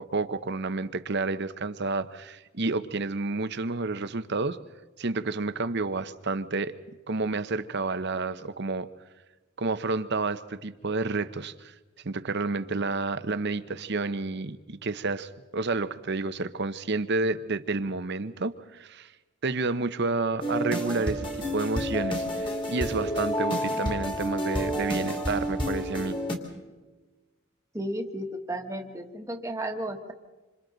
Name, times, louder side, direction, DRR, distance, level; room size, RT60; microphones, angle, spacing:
voice 1, 0.0-4.6 5.0-6.7 7.1-8.9 9.6-11.7 12.0-19.1 19.4-26.2, right 3 dB, 50° right, 12 dB, 0.8 m, -30 dB
sound 1, 20.4-26.4, equal, 25° left, 2.7 m, -29 dB
voice 2, 27.7-30.1, right 1 dB, 15° right, 4 dB, 1.4 m, -33 dB
27.0 x 26.5 x 4.0 m, 1.2 s
head